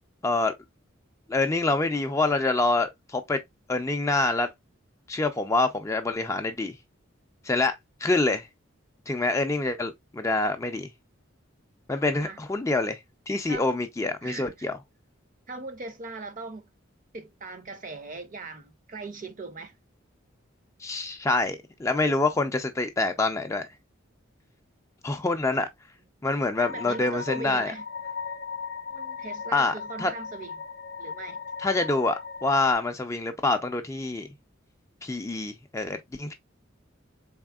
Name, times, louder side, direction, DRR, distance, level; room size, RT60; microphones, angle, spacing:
voice 1, 0.2-0.5 1.3-3.4 3.7-4.5 5.1-6.8 7.4-7.7 8.0-8.5 9.1-10.9 11.9-13.0 13.3-14.8 20.8-23.7 25.0-25.7 26.2-27.7 29.5-30.1 31.6-32.2 32.4-34.3 35.0-36.3, left 2 dB, 15° left, 0.3 m, -26 dB
voice 2, 14.2-14.7 15.5-16.7 17.1-19.8 26.6-27.8 28.9-30.6 31.0-31.4, right 3 dB, 40° right, 0.5 m, -39 dB
sound 1, 26.6-32.7, left 5 dB, 45° left, 0.7 m, -37 dB
4.0 x 3.6 x 2.3 m
head